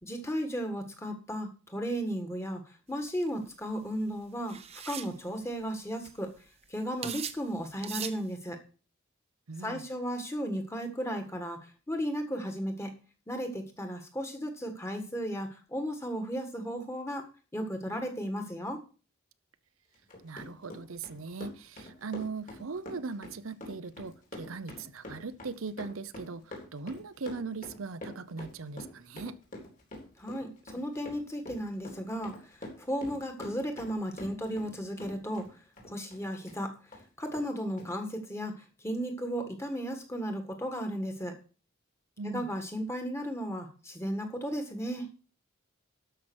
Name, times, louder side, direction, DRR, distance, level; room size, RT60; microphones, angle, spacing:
voice 1, 0.0-2.6 2.9-4.6 4.9-6.3 6.7-8.6 9.6-11.6 11.9-12.9 13.3-17.3 17.5-18.8 30.2-32.3 32.8-35.5 35.8-36.8 37.2-41.3 42.2-45.1, equal, 15° left, 1.8 m, -35 dB
sound 1, 3.1-3.3 4.5-5.1 5.8-5.9 6.0-6.4 7.0-7.4 7.8-8.2, right 8 dB, 30° right, 0.8 m, -38 dB
voice 2, 9.5-9.8 20.2-29.4 42.2-42.5, right 4 dB, 75° right, 0.7 m, -39 dB
Run, 19.9-34.7 35.0-36.6 36.9-37.0 37.3-37.5 37.8-37.9, left 1 dB, 40° left, 3.6 m, -45 dB
12.5 x 5.8 x 6.2 m
head